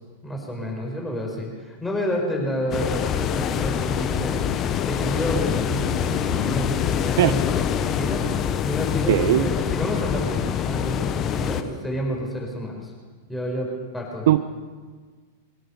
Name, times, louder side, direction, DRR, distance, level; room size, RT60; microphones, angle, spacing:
voice 1, 0.2-12.9 13.3-14.3, equal, 10° left, -1 dB, 5.5 m, -30 dB
sound 1, 2.7-11.6, left 9 dB, 30° left, 1.2 m, -25 dB
voice 2, 9.1-9.5 14.3-14.4, right 14 dB, 55° right, 12 dB, 0.7 m, -18 dB
22.5 x 17.0 x 7.0 m, 1.5 s
figure-of-eight pair, 95°, 0 cm